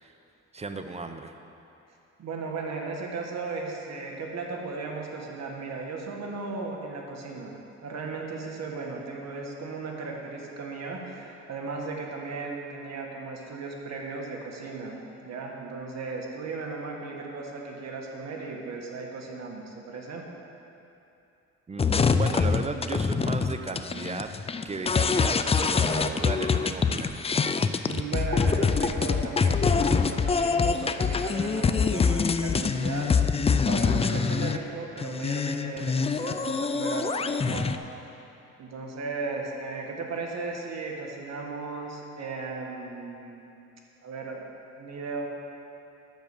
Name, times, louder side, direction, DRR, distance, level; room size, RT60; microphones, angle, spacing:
voice 1, 0.5-1.3 21.7-24.3 24.6-27.2, right 3 dB, 20° right, 7 dB, 0.7 m, -35 dB
voice 2, 2.2-20.3 27.8-33.1 33.7-37.8 38.6-43.6 44.0-44.4 44.8-45.3, right 4 dB, 60° right, 0 dB, 1.8 m, -36 dB
sound 1, 21.8-34.6 35.0-37.8, left 5 dB, 20° left, 0.4 m, -25 dB
10.5 x 6.9 x 6.8 m, 2.8 s
cardioid pair, 90°, 30 cm